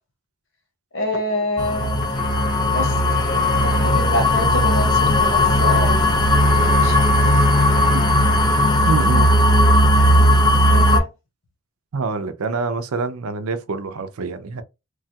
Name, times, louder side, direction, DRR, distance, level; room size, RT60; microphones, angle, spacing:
voice 1, 0.9-2.1 2.7-2.9 3.2-7.5 10.7-11.1, left 1 dB, 60° left, 1.1 m, -27 dB
sound 1, 1.6-11.0, left 1 dB, 20° left, 0.3 m, -16 dB
Trumpet, 2.0-8.8, left 2 dB, 35° left, 0.8 m, -34 dB
voice 2, 8.9-9.3 11.9-14.6, right 4 dB, 85° right, 0.5 m, -25 dB
3.2 x 2.3 x 2.7 m
head